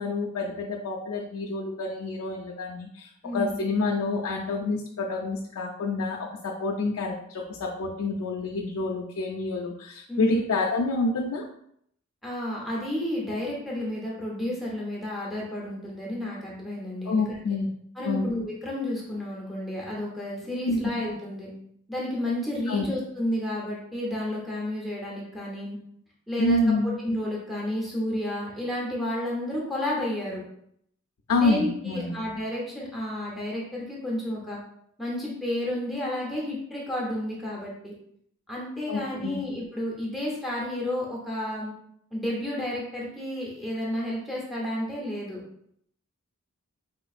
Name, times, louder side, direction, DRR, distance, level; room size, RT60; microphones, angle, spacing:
voice 1, 0.0-11.4 17.1-17.7 18.0-18.3 20.6-20.8 22.7-22.9 26.4-27.0 31.3-32.2 38.9-39.4, left 3 dB, 90° left, -1 dB, 0.4 m, -28 dB
voice 2, 3.2-3.8 10.1-10.4 12.2-17.4 18.0-21.5 21.9-25.8 26.3-26.6 27.0-30.4 31.3-34.6 35.0-37.9 38.5-41.7 42.1-45.4, left 1 dB, ahead, -5 dB, 0.8 m, -31 dB
4.3 x 3.0 x 2.4 m, 0.70 s
head